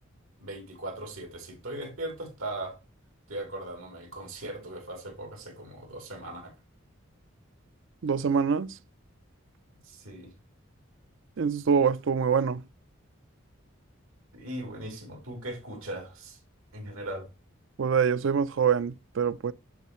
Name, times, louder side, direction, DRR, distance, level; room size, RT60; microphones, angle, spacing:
voice 1, 0.4-2.8 3.3-6.5 9.8-10.3 14.3-16.4 16.7-17.3, right 1 dB, 90° right, 3.2 m, -39 dB
voice 2, 8.0-8.7 11.4-12.6 17.8-19.5, right 6 dB, 65° right, 0.4 m, -25 dB
9.6 x 4.2 x 3.0 m
head